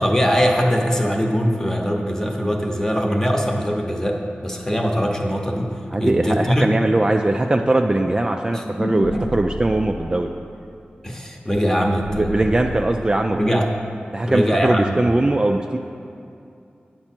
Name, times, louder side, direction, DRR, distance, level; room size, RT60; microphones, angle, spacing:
voice 1, 0.0-5.7 6.0-6.8 8.5-9.3 11.0-12.4 13.3-13.6 14.2-15.1, equal, 15° left, 1 dB, 0.9 m, -22 dB
voice 2, 5.9-10.3 12.1-13.6 14.1-15.8, right 2 dB, 25° right, 3 dB, 0.3 m, -20 dB
sound 1, 9.0-10.5 12.0-13.5, left 1 dB, 70° left, 1.3 m, -33 dB
8.7 x 6.0 x 4.4 m, 2.6 s
wide cardioid pair, 65°, 4 cm